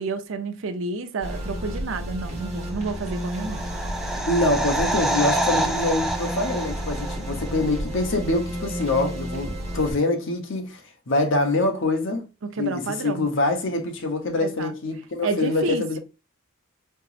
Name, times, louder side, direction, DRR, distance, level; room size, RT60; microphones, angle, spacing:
voice 1, 0.0-3.6 12.4-13.3 14.4-14.7 15.2-16.0, right 4 dB, 60° right, 0.5 m, -30 dB
sound 1, 1.2-9.9, equal, 30° right, 1.2 m, -32 dB
sound 2, 2.8-7.6 7.9-8.0, right 1 dB, ahead, 0.3 m, -28 dB
voice 2, 4.3-10.8 11.1-12.3 12.6-16.0, left 2 dB, 60° left, 0.8 m, -25 dB
4.4 x 3.0 x 2.5 m
head